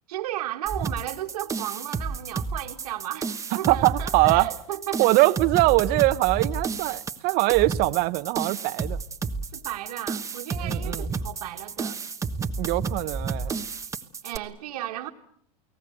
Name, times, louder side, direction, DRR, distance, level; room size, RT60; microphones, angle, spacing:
voice 1, 0.1-5.1 9.5-12.0 13.8-13.9 14.2-15.1, right 13 dB, 80° right, 0 dB, 1.8 m, -34 dB
sound 1, 0.7-14.4, right 4 dB, 15° right, 1.2 m, -31 dB
voice 2, 3.7-4.5 5.0-9.0 10.6-11.1 12.6-13.6, right 21 dB, 50° right, 15 dB, 1.0 m, -22 dB
29.5 x 18.5 x 7.9 m, 0.68 s
supercardioid pair, 120°, 20 cm